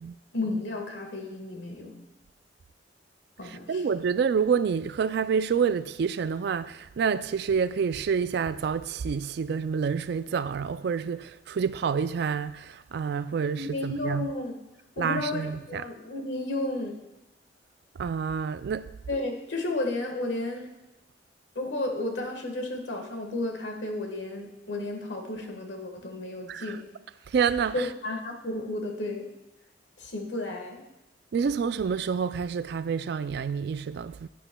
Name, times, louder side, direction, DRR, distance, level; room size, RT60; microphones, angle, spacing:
voice 1, 0.3-2.0 3.4-3.8 13.5-14.6 15.0-17.0 19.1-20.7 21.5-26.8 27.7-29.3 30.0-30.8, left 2 dB, 70° left, 1.4 m, -33 dB
voice 2, 3.4-14.3 15.0-15.8 18.0-18.9 26.5-26.8 27.3-27.9 31.3-34.3, right 6 dB, 60° right, 0.3 m, -28 dB
11.0 x 10.0 x 2.2 m
head